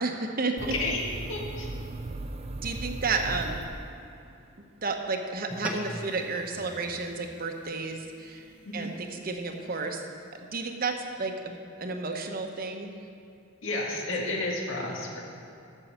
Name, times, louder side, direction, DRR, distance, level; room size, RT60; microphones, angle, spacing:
voice 1, 0.0-0.7 2.6-3.6 4.8-8.5 8.7-10.0 10.5-12.9 14.1-14.3, right 3 dB, 45° right, 4 dB, 0.9 m, -32 dB
voice 2, 0.6-1.0 1.3-1.7 8.6-8.9 13.6-15.2, left 2 dB, 75° left, -2 dB, 1.9 m, -31 dB
sound 1, 0.6-4.3, right 2 dB, 30° right, 0.4 m, -37 dB
sound 2, 5.5-10.1, equal, 10° right, 0.9 m, -43 dB
14.0 x 5.5 x 6.5 m, 2.5 s
head